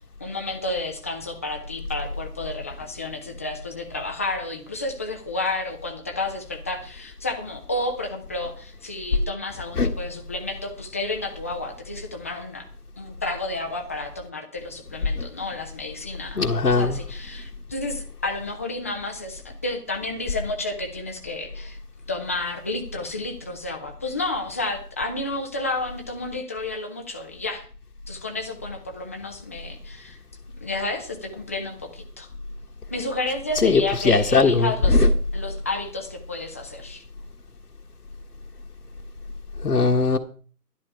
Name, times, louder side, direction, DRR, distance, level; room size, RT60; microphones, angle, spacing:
voice 1, 0.2-12.6 13.0-21.8 22.1-27.6 28.1-30.2 30.6-32.3 32.9-35.1 35.3-37.0, left 2 dB, 10° left, 0.5 m, -31 dB
voice 2, 16.4-17.0 33.6-35.1 39.6-40.2, left 3 dB, 80° left, 1.5 m, -19 dB
11.5 x 11.5 x 4.7 m
figure-of-eight pair, 140°, 47 cm